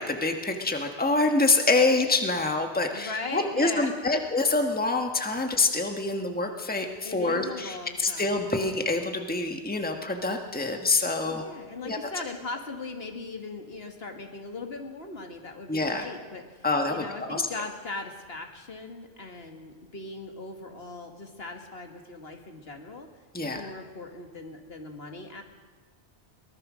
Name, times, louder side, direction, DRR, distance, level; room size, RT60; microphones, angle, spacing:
voice 1, 0.0-11.4 11.8-12.0 15.7-16.0 16.6-17.5 23.3-23.6, left 3 dB, 10° left, 4 dB, 1.5 m, -26 dB
voice 2, 2.9-3.9 7.0-8.8 11.2-23.1 23.4-25.4, left 3 dB, 65° left, 4 dB, 2.2 m, -39 dB
23.0 x 18.5 x 6.3 m, 1.4 s
omnidirectional pair, 1.1 m